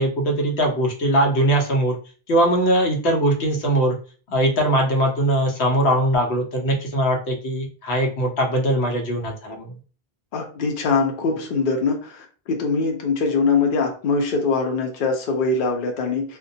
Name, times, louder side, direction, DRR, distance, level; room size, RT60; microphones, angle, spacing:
voice 1, 0.0-2.0 2.3-4.0 4.3-9.7, right 1 dB, 90° left, 1 dB, 0.9 m, -21 dB
voice 2, 10.3-16.4, left 4 dB, 60° left, 3 dB, 0.7 m, -22 dB
2.2 x 2.1 x 2.6 m, 0.38 s
omnidirectional pair, 1.1 m